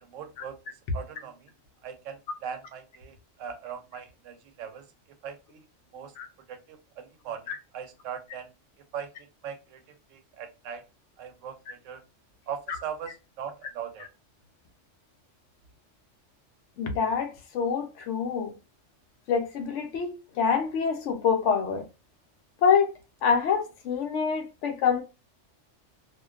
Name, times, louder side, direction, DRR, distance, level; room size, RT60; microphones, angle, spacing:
voice 1, 0.1-0.6 0.9-1.5 1.8-4.8 5.2-5.6 5.9-6.1 6.5-7.4 7.7-8.5 8.9-9.1 9.4-9.8 10.1-10.8 11.2-12.0 12.5-14.1, right 8 dB, 85° right, 0.9 m, -39 dB
voice 2, 16.8-18.6 19.3-21.8 22.6-22.9 23.2-25.0, left 6 dB, 75° left, 0.9 m, -26 dB
2.4 x 2.2 x 2.3 m
omnidirectional pair, 1.3 m